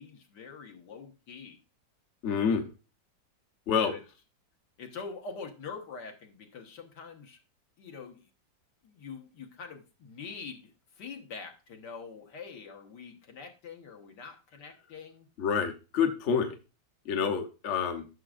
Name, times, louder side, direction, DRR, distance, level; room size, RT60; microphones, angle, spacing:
voice 1, 0.0-1.6 3.8-4.0 4.8-7.4 7.8-8.3 8.8-15.3, left 5 dB, 70° left, 3 dB, 1.9 m, -44 dB
voice 2, 2.2-2.7 3.7-3.9 15.4-16.6 17.0-18.1, left 6 dB, 50° left, 5 dB, 1.1 m, -28 dB
13.5 x 6.2 x 2.5 m, 0.32 s
omnidirectional pair, 1.9 m